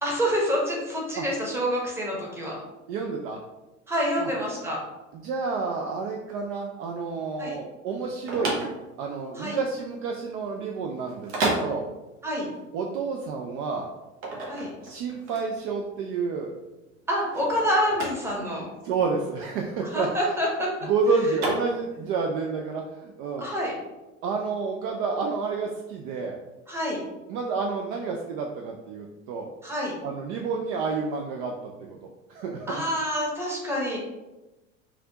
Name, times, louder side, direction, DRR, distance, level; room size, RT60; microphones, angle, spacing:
voice 1, 0.0-2.6 3.9-4.8 7.4-7.6 9.3-9.6 12.2-12.5 14.5-14.7 17.1-18.6 19.8-20.7 23.4-23.7 26.7-27.0 29.6-29.9 32.7-34.0, equal, 5° right, -3 dB, 1.0 m, -27 dB
voice 2, 2.9-3.4 4.2-4.3 5.1-8.7 9.0-11.9 12.7-13.9 14.8-16.5 18.5-20.1 20.8-23.4 24.2-26.4 27.3-29.5 30.0-32.0 32.3-32.8, right 4 dB, 45° right, 1 dB, 0.4 m, -29 dB
sound 1, 7.9-22.2, right 2 dB, 65° right, 1.0 m, -33 dB
3.3 x 2.4 x 2.8 m, 1.1 s
hypercardioid pair, 80°, 39 cm